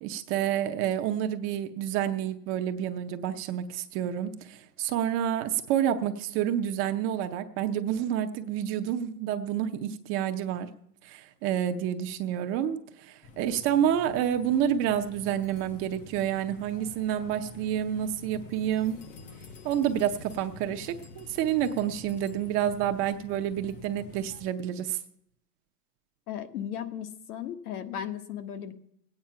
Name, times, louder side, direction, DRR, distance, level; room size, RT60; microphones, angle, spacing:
voice 1, 0.0-10.7 11.0-19.0 19.6-25.0, right 10 dB, 25° right, 7 dB, 0.6 m, -29 dB
sound 1, 13.2-24.5, left 4 dB, 15° left, 0.5 m, -48 dB
voice 2, 26.3-28.7, left 9 dB, 70° left, 7 dB, 1.5 m, -36 dB
19.5 x 8.9 x 5.6 m, 0.74 s
supercardioid pair, 140°, 47 cm